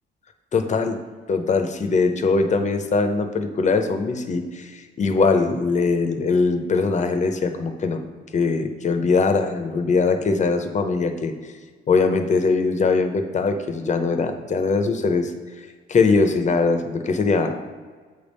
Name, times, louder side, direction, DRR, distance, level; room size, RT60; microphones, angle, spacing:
voice 1, 0.5-1.0 1.3-8.0 8.3-11.3 11.9-15.3 15.9-17.6, left 4 dB, 35° left, 7 dB, 0.7 m, -21 dB
7.8 x 3.5 x 5.4 m, 1.5 s
cardioid pair, 90°, 20 cm